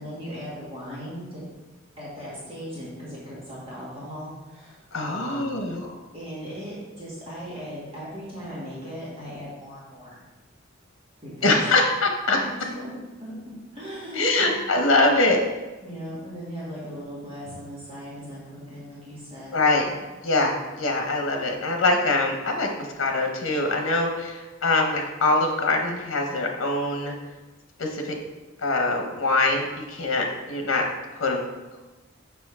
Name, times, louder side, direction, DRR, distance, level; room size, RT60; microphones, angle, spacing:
voice 1, 0.0-1.4 2.0-5.6 6.1-10.2 11.2-11.7 12.3-13.3 13.7-14.5 15.8-20.0, equal, 30° right, -8 dB, 2.0 m, -38 dB
voice 2, 4.9-5.9 11.4-12.4 14.1-15.4 19.5-19.8 20.2-27.1 27.8-28.1 28.6-30.8 31.2-31.4, left 2 dB, 85° left, 3 dB, 0.9 m, -23 dB
6.9 x 5.9 x 3.6 m, 1.2 s
head